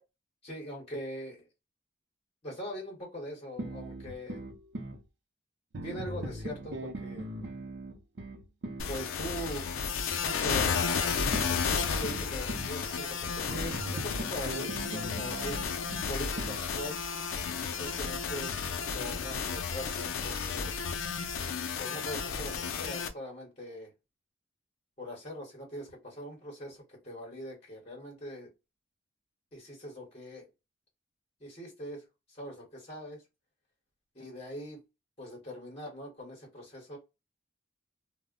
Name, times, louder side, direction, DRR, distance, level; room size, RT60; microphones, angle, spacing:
voice 1, 0.4-1.5 2.4-4.4 5.8-7.3 8.9-9.7 10.2-15.6 16.1-16.9 17.7-18.5 18.9-20.8 21.8-23.9 25.0-28.5 29.5-30.5 31.4-33.2 34.1-34.8 35.2-37.0, equal, 30° left, 1.0 m, -42 dB
sound 1, 3.6-5.0 5.7-8.9 11.3-12.7 13.5-16.7, right 1 dB, 60° right, 0.6 m, -40 dB
sound 2, 8.8-23.1, left 6 dB, 90° left, 0.4 m, -33 dB
sound 3, 10.7-21.3, equal, 10° right, 0.7 m, -49 dB
2.1 x 2.0 x 3.5 m
head